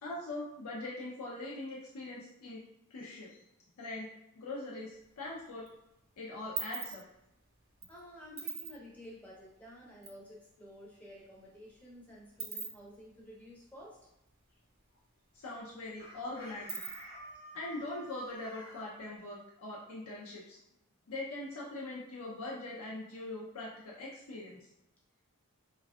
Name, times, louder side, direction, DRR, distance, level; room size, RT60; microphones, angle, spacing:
voice 1, 0.0-2.6 2.9-3.4 3.8-4.1 4.4-5.7 6.2-7.0 15.3-16.8 17.5-20.6 21.1-24.6, left 2 dB, 75° left, -5 dB, 0.4 m, -42 dB
sound 1, 4.9-5.7 6.0-10.2 10.5-10.6 10.8-14.7 14.9-15.0 15.4-17.3, right 5 dB, 40° right, 0.5 m, -43 dB
voice 2, 7.9-14.0, equal, 5° left, -5 dB, 0.6 m, -52 dB
Chicken rooster, 16.0-18.9, equal, 45° left, 0.7 m, -50 dB
2.5 x 2.2 x 2.2 m, 0.85 s
head